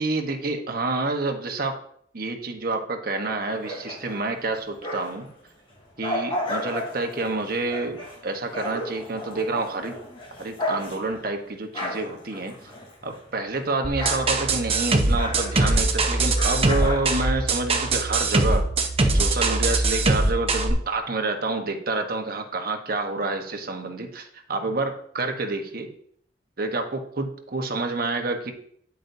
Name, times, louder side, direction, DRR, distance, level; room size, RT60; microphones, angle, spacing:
voice 1, 0.0-1.8 2.1-5.3 6.0-9.9 10.4-12.5 13.0-18.7 19.1-25.9 26.6-28.5, right 3 dB, 55° right, 4 dB, 1.2 m, -28 dB
sound 1, 3.5-5.3 5.7-13.3 13.6-17.8, left 1 dB, 30° left, 3.2 m, -34 dB
sound 2, 13.8-20.7, right 2 dB, 35° right, 0.9 m, -22 dB
9.5 x 8.4 x 2.7 m, 0.65 s
head